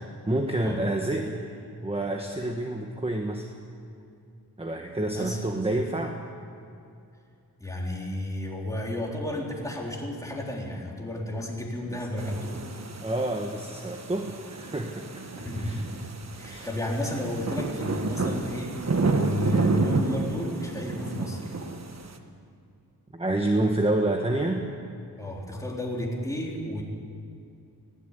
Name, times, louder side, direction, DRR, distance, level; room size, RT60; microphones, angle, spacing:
voice 1, 0.0-1.4 1.8-3.5 4.6-6.2 11.9-12.0 13.0-15.8 16.4-16.7 23.1-24.7, right 1 dB, 15° right, 3 dB, 1.3 m, -28 dB
voice 2, 7.6-12.7 15.3-15.9 16.3-21.5 25.2-26.8, left 1 dB, 10° left, -2 dB, 3.9 m, -32 dB
sound 1, 12.2-22.2, right 3 dB, 45° right, 1.5 m, -30 dB
19.5 x 17.0 x 8.3 m, 2.5 s
wide cardioid pair, 115°, 38 cm